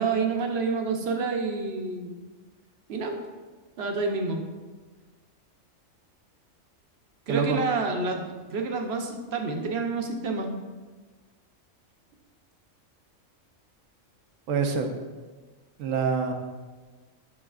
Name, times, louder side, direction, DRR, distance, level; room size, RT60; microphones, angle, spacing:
voice 1, 0.0-2.2 2.9-3.2 3.8-4.4 7.3-10.5, right 4 dB, 55° right, 3 dB, 0.9 m, -28 dB
voice 2, 7.3-7.6 14.5-14.9 15.8-16.3, right 5 dB, 80° right, 5 dB, 1.1 m, -25 dB
8.4 x 6.3 x 2.4 m, 1.3 s
omnidirectional pair, 1.4 m